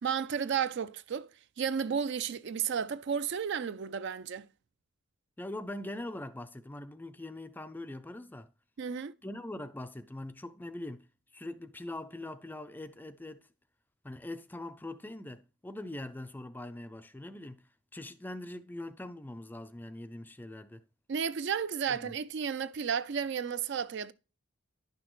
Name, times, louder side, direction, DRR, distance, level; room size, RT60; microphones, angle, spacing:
voice 1, 0.0-1.3 1.6-4.5 8.8-9.1 21.1-24.1, right 7 dB, 55° right, 0.4 m, -32 dB
voice 2, 5.4-8.5 9.2-13.5 14.0-20.8 21.9-22.2, left 1 dB, 10° left, 0.3 m, -42 dB
10.5 x 6.0 x 3.1 m
head